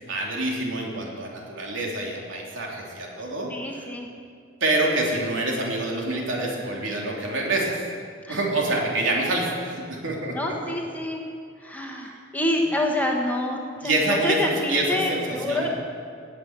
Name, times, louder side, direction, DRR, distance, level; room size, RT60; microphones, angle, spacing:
voice 1, 0.1-3.8 4.6-7.8 8.3-10.5 13.8-15.7, right 2 dB, 75° right, -2 dB, 3.3 m, -26 dB
voice 2, 3.5-4.1 8.2-8.5 10.3-11.2 11.6-15.7, left 1 dB, 10° left, 0 dB, 1.4 m, -27 dB
18.5 x 7.9 x 8.2 m, 2.2 s
head